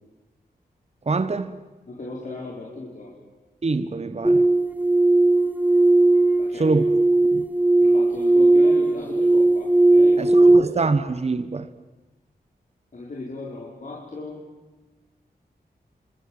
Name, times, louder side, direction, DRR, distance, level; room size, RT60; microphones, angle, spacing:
voice 1, 1.1-1.6 3.6-4.4 6.6-6.8 7.3-7.4 10.2-11.7, right 3 dB, 40° right, 1.1 m, -24 dB
voice 2, 1.9-3.1 6.4-6.9 7.8-10.7 12.9-14.4, left 2 dB, 50° left, 5.4 m, -37 dB
sound 1, 4.2-10.6, right 2 dB, 10° right, 0.8 m, -17 dB
28.0 x 25.5 x 7.7 m
wide cardioid pair, 95°, 17 cm